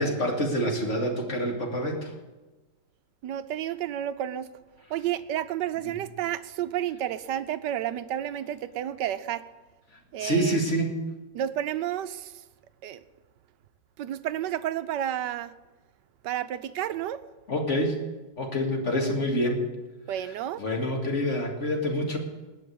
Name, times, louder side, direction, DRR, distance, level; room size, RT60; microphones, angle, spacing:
voice 1, 0.0-2.1 5.8-5.9 10.2-10.9 17.5-18.0 18.4-19.6 20.2-20.3 20.6-22.2, equal, 40° left, 1 dB, 2.4 m, -27 dB
voice 2, 3.2-4.5 4.9-9.4 10.1-10.6 11.3-12.3 12.8-13.0 14.0-15.5 16.2-17.2 20.1-20.6, right 11 dB, 75° right, 13 dB, 1.2 m, -31 dB
19.5 x 6.5 x 8.5 m, 1.2 s
omnidirectional pair, 2.0 m